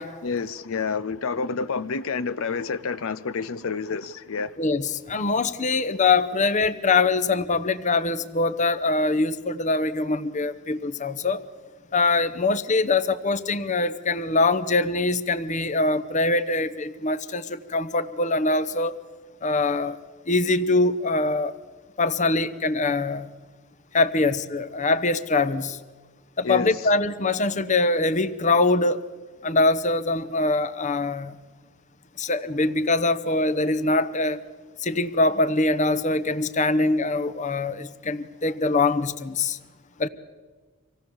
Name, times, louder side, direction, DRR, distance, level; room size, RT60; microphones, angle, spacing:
voice 1, 0.2-4.5 26.4-26.7, left 5 dB, 80° left, 0.6 m, -28 dB
voice 2, 4.6-11.4 11.9-18.9 19.4-20.0 20.3-21.5 22.0-23.3 23.9-25.8 26.4-29.1 29.4-31.3 32.2-34.4 34.8-39.6 40.0-40.1, left 3 dB, 35° left, 0.9 m, -23 dB
25.5 x 17.0 x 7.1 m
head